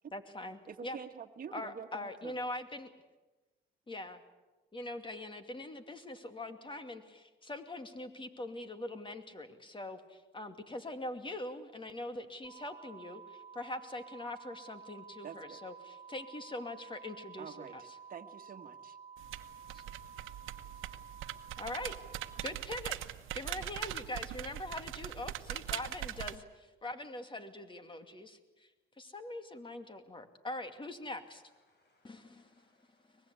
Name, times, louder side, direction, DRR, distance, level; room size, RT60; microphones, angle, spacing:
voice 1, 0.1-1.0 1.5-2.9 3.9-4.2 4.7-17.8 19.7-19.8 21.6-22.0 22.4-23.0 23.3-28.7 29.0-31.4 32.0-32.6 33.1-33.2, left 1 dB, 25° left, 8 dB, 2.5 m, -43 dB
voice 2, 0.7-2.4 15.2-15.6 17.4-19.0, right 6 dB, 45° right, 5 dB, 1.8 m, -47 dB
sound 1, 12.4-22.5, right 6 dB, 20° right, 2.9 m, -52 dB
sound 2, 19.2-26.4, right 13 dB, 85° right, 1.1 m, -41 dB
voice 3, 31.1-33.3, left 2 dB, 60° left, 4 dB, 7.8 m, -74 dB
23.5 x 20.5 x 8.4 m, 1.2 s
cardioid pair, 90°, 20 cm